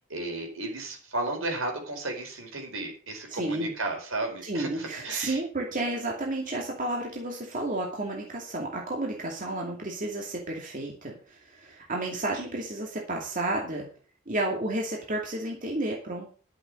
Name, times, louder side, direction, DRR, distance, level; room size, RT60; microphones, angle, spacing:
voice 1, 0.1-5.4, right 2 dB, 75° right, 2 dB, 4.7 m, -33 dB
voice 2, 3.3-3.7 4.4-13.9 14.3-16.4, right 2 dB, 40° right, -1 dB, 2.4 m, -32 dB
11.5 x 7.5 x 6.3 m, 0.39 s
head